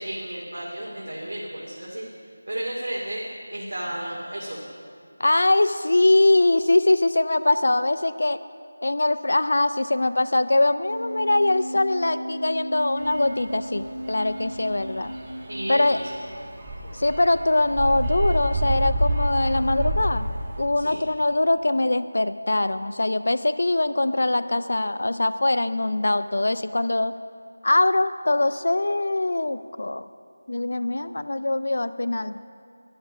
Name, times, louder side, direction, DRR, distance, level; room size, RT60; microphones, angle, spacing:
voice 1, 0.0-2.0 2.5-3.2 3.5-4.6 15.5-16.0 16.8-17.0 20.7-21.0, right 1 dB, 70° right, -5 dB, 2.5 m, -33 dB
voice 2, 5.2-8.4 8.8-15.1 15.7-16.0 17.0-20.3 20.6-27.1 27.6-30.1 30.5-32.3, left 2 dB, 60° left, 13 dB, 0.4 m, -22 dB
Wind instrument woodwind instrument, 10.9-16.3, equal, 85° right, 1.4 m, -35 dB
sound 1, 13.0-20.6, right 1 dB, 15° right, 1.2 m, -29 dB
11.5 x 11.0 x 5.3 m, 2.5 s
figure-of-eight pair, 175°, 0 cm